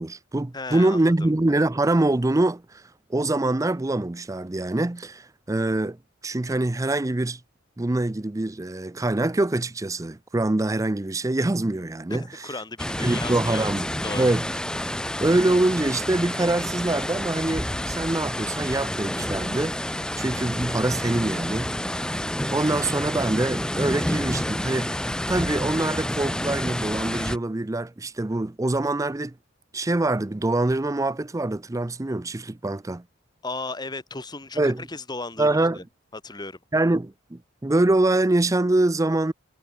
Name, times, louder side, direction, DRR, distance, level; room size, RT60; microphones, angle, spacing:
voice 1, 0.0-2.8 3.1-6.0 6.2-7.4 7.8-12.3 13.0-13.9 14.1-14.4 15.2-21.7 22.5-25.0 25.3-29.3 29.7-33.0 34.6-34.9 35.4-35.8 36.7-39.3, right 2 dB, 15° right, 0.5 m, -24 dB
voice 2, 0.5-1.0 12.1-13.7 14.0-14.3 33.4-35.8 36.1-36.6, left 3 dB, 20° left, 1.6 m, -35 dB
sound 1, 12.8-27.4, left 1 dB, 5° left, 0.9 m, -29 dB
head